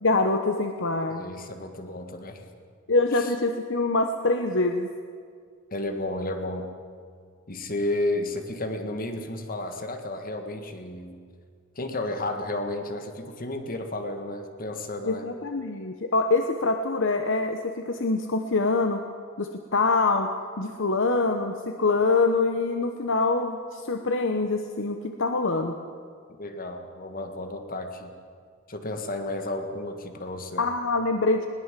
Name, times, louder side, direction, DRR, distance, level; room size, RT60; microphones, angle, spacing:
voice 1, 0.0-1.2 2.9-4.9 15.0-19.0 19.4-20.3 20.6-25.8 30.6-31.5, left 3 dB, 60° left, 5 dB, 1.1 m, -25 dB
voice 2, 1.1-2.4 3.1-3.3 5.7-6.7 7.5-11.2 11.8-15.3 26.4-28.1 28.7-30.6, left 2 dB, 45° left, 6 dB, 1.7 m, -32 dB
21.0 x 19.0 x 7.5 m, 2.2 s
head